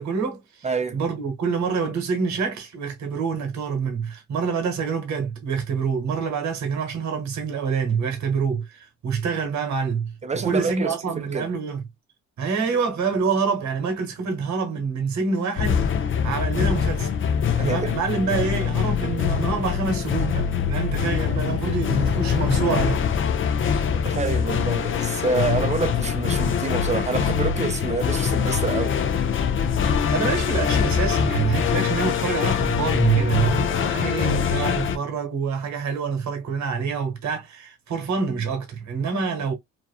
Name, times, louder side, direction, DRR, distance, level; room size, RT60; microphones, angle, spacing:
voice 1, 0.0-0.7 0.9-11.8 12.4-17.1 17.6-23.0 30.1-39.5, right 5 dB, 65° right, 1.1 m, -26 dB
voice 2, 0.6-1.0 10.2-11.5 17.6-17.9 23.9-29.0, right 4 dB, 25° right, 0.6 m, -27 dB
sound 1, 15.6-35.0, left 7 dB, 45° left, 0.5 m, -23 dB
2.6 x 2.3 x 2.3 m
cardioid pair, 90°, 30 cm